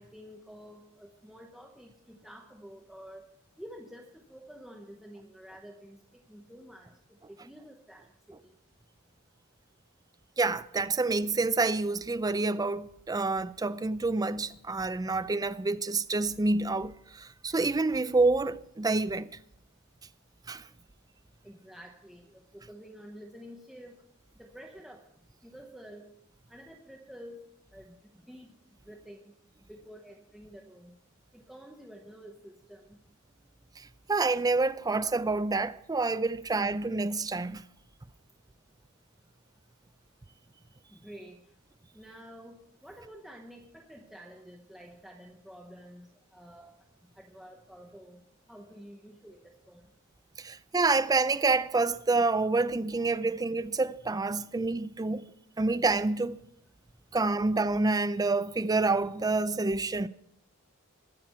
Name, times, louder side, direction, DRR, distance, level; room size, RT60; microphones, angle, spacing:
voice 1, 0.0-3.2 3.6-8.5 21.4-24.0 24.4-25.0 25.4-26.1 26.5-27.4 27.7-28.0 28.3-28.5 28.9-29.2 29.7-31.0 31.3-33.0 40.9-41.4 41.9-46.8 47.0-48.2 48.5-49.8, equal, ahead, 0.9 m, -49 dB
voice 2, 10.4-19.3 20.5-20.7 33.8-37.6 50.4-55.2 55.6-56.4 57.1-60.1, right 3 dB, 15° right, 0.4 m, -28 dB
22.0 x 7.6 x 4.4 m
head